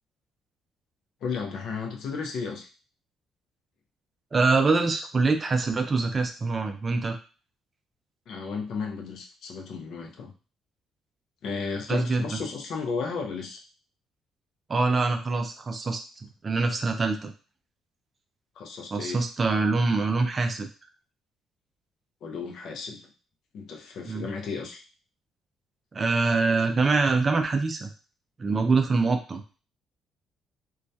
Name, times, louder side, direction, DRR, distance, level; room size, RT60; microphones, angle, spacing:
voice 1, 1.2-2.7 8.3-10.3 11.4-13.6 18.6-19.2 22.2-23.1 23.5-24.8, left 5 dB, 70° left, 2 dB, 0.5 m, -34 dB
voice 2, 4.3-7.2 11.9-12.3 14.7-16.0 16.4-17.3 18.9-20.7 24.1-24.3 25.9-27.9 28.4-29.4, right 3 dB, 30° right, 5 dB, 0.4 m, -24 dB
2.2 x 2.1 x 2.6 m, 0.34 s
cardioid pair, 110°, 0 cm